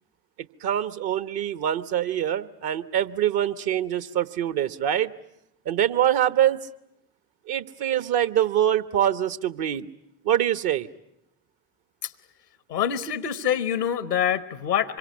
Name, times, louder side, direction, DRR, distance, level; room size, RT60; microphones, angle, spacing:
voice 1, 0.6-5.1 5.6-6.6 7.5-9.9 10.2-10.9, right 11 dB, 50° right, 14 dB, 1.2 m, -24 dB
voice 2, 12.7-15.0, left 9 dB, 85° left, 17 dB, 1.0 m, -25 dB
26.0 x 23.0 x 9.6 m, 0.80 s
figure-of-eight pair, 45°, 47 cm